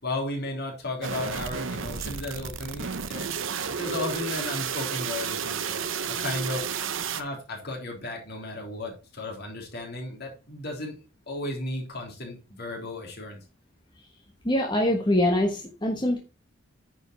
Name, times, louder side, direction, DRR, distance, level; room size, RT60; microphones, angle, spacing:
voice 1, 0.0-3.5 3.8-5.8 6.1-6.7 7.0-11.0 11.3-13.4, left 2 dB, 55° left, -1 dB, 3.6 m, -34 dB
sound 1, 1.0-7.2, right 6 dB, 75° right, 0.8 m, -32 dB
voice 2, 14.4-16.2, left 1 dB, 25° left, 1 dB, 1.3 m, -24 dB
9.9 x 5.1 x 4.4 m, 0.31 s
head